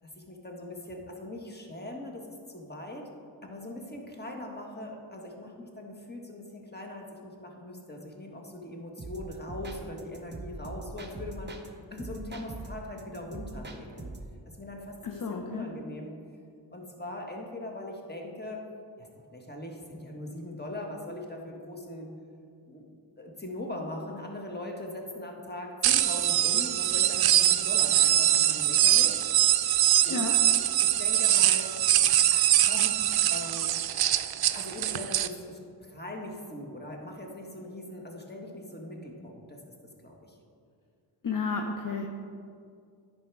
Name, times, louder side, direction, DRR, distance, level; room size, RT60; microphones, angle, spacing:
voice 1, 0.0-3.1 3.4-11.5 11.9-14.1 14.4-16.1 16.7-18.6 19.0-22.1 22.7-22.8 23.2-29.2 30.0-30.4 30.8-31.7 32.3-33.0 33.3-33.7 34.5-39.6 40.0-40.4, left 1 dB, 20° left, 1 dB, 1.6 m, -41 dB
sound 1, 9.0-11.7 12.0-14.3, right 2 dB, 25° right, 0.9 m, -42 dB
voice 2, 15.0-15.7 30.1-30.3 41.2-42.1, left 5 dB, 45° left, 3 dB, 0.7 m, -32 dB
sound 2, 25.8-35.3, right 12 dB, 55° right, 0.5 m, -23 dB
10.5 x 4.8 x 4.7 m, 2.3 s
cardioid pair, 60°, 45 cm